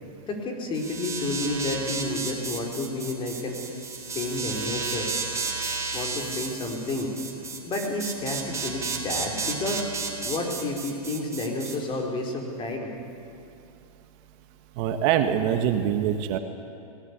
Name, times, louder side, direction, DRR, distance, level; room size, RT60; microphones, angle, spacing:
voice 1, 0.3-3.6 4.1-5.1 5.9-7.1 7.6-9.8 10.2-12.9, left 2 dB, 25° left, 2 dB, 4.6 m, -30 dB
sound 1, 0.7-11.8, right 4 dB, 15° right, 3.6 m, -33 dB
voice 2, 14.8-16.4, right 9 dB, 45° right, 7 dB, 1.7 m, -24 dB
23.0 x 19.5 x 8.4 m, 2.8 s
hypercardioid pair, 130°, 19 cm